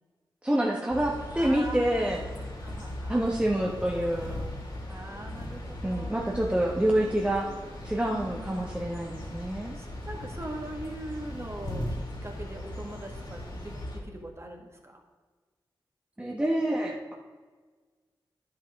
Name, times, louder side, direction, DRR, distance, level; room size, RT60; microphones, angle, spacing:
voice 1, 0.4-2.2 3.1-4.4 5.8-7.5 7.8-9.8 16.2-17.1, right 1 dB, 15° right, -2 dB, 1.2 m, -27 dB
sound 1, 0.9-14.0, left 1 dB, 55° left, 3.2 m, -38 dB
voice 2, 1.3-3.4 4.9-6.5 6.8-7.7 8.1-8.8 9.7-15.0, right 1 dB, 30° right, 2 dB, 1.8 m, -42 dB
10.0 x 7.9 x 3.6 m, 1.4 s
cardioid pair, 50°, 9 cm